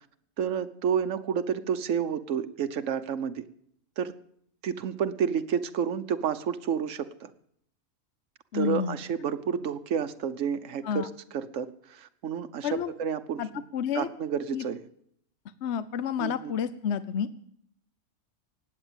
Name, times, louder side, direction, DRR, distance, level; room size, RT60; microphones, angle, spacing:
voice 1, 0.4-3.4 4.0-4.1 4.6-7.3 8.5-13.6 13.9-14.8 16.2-16.5, right 7 dB, 70° right, 9 dB, 1.3 m, -30 dB
voice 2, 8.5-9.0 10.8-11.1 12.6-12.9 13.4-14.1 14.5-14.6 15.6-17.3, left 8 dB, 60° left, 13 dB, 1.0 m, -30 dB
18.5 x 8.1 x 9.0 m, 0.68 s
omnidirectional pair, 1.4 m